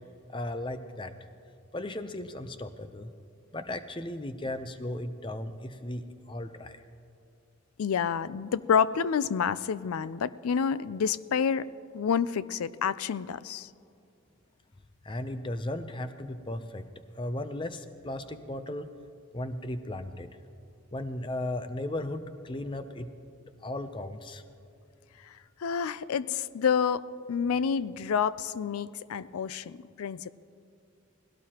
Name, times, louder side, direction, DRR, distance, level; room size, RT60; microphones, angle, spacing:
voice 1, 0.3-1.1 1.7-3.1 3.5-6.8 15.0-16.9 17.2-18.9 19.3-20.3 20.9-23.1 23.6-24.4, left 1 dB, 20° left, 10 dB, 0.5 m, -36 dB
voice 2, 7.8-11.6 11.9-13.7 25.6-30.3, left 7 dB, 90° left, 17 dB, 0.4 m, -28 dB
19.5 x 17.0 x 2.9 m, 2.5 s
head